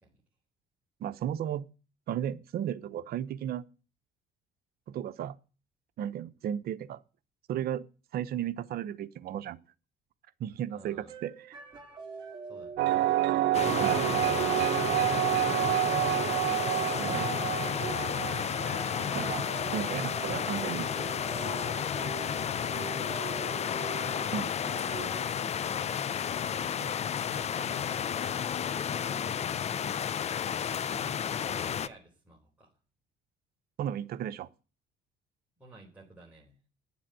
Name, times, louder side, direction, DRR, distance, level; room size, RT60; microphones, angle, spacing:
voice 1, 1.0-1.6 2.1-3.6 4.9-5.4 6.0-7.0 7.5-7.9 8.1-9.6 10.4-11.5 13.8-14.1 17.0-17.3 19.1-20.9 24.3-24.5 33.8-34.5, right 10 dB, 65° right, 0.9 m, -34 dB
voice 2, 10.7-11.1 12.4-12.9 13.5-14.8 22.4-23.2 24.9-25.6 26.3-30.1 30.8-32.7 35.6-36.7, right 2 dB, 10° right, 4.1 m, -53 dB
sound 1, 11.1-25.3, right 6 dB, 25° right, 4.2 m, -43 dB
sound 2, 12.8-20.3, right 15 dB, 85° right, 0.6 m, -29 dB
sound 3, 13.5-31.9, left 8 dB, 40° left, 0.6 m, -32 dB
10.5 x 7.4 x 9.0 m
cardioid pair, 110°, 17 cm